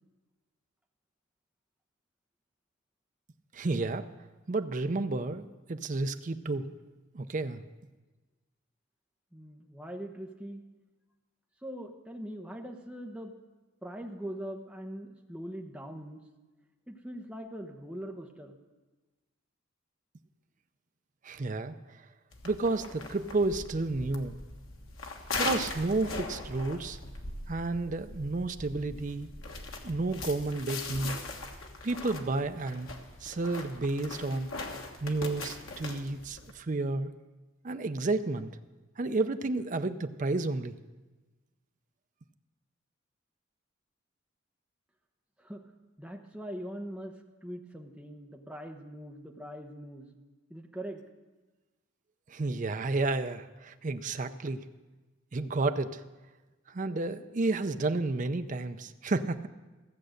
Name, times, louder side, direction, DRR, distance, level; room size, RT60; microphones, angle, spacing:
voice 1, 3.5-4.1 4.5-6.7 7.1-7.6 21.2-21.7 22.4-24.4 25.4-27.0 27.5-29.3 29.8-31.2 31.8-32.9 33.2-34.5 35.0-37.1 37.6-38.5 39.0-40.8 52.3-54.6 55.3-56.0 56.7-59.5, right 2 dB, 40° right, 9 dB, 0.5 m, -31 dB
voice 2, 9.3-10.6 11.6-13.3 13.8-16.2 16.9-18.6 45.4-45.7 46.0-47.2 47.4-50.2 50.5-51.0, equal, 5° right, 2 dB, 0.9 m, -42 dB
sound 1, 22.3-36.5, left 3 dB, 85° left, 1.4 m, -40 dB
15.5 x 7.7 x 6.5 m, 1.2 s
head